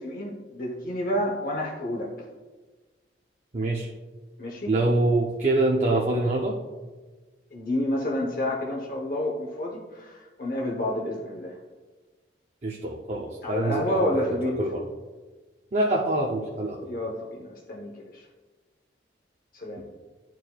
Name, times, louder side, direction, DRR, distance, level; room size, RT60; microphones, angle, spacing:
voice 1, 0.0-2.1 4.4-4.7 7.5-11.6 13.4-14.6 16.9-18.3 19.5-19.8, left 1 dB, 50° left, -1 dB, 0.8 m, -29 dB
voice 2, 3.5-3.9 4.7-6.6 12.6-14.9 15.7-16.8 19.8-19.9, right 2 dB, 40° right, -2 dB, 0.5 m, -25 dB
11.5 x 4.6 x 2.3 m, 1.3 s
head